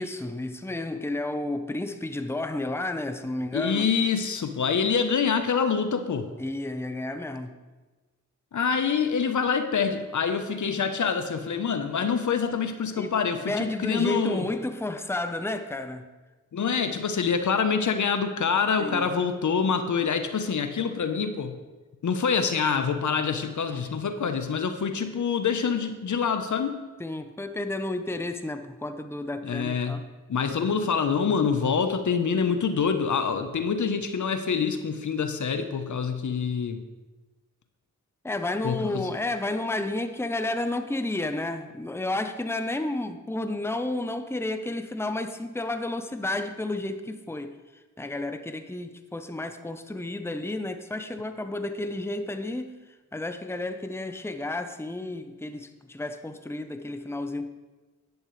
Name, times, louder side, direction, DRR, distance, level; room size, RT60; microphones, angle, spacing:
voice 1, 0.0-3.9 6.4-7.6 12.9-13.2 13.5-16.1 18.8-19.1 23.7-23.9 27.0-30.1 38.2-47.6 48.0-52.8 53.1-57.5, left 2 dB, 5° left, 0.9 m, -31 dB
voice 2, 3.5-6.3 8.5-14.5 16.5-21.6 22.0-26.8 29.4-30.0 30.3-36.8 38.6-39.1, left 6 dB, 60° left, 1.0 m, -26 dB
11.0 x 11.0 x 3.3 m
supercardioid pair, 40°, 33 cm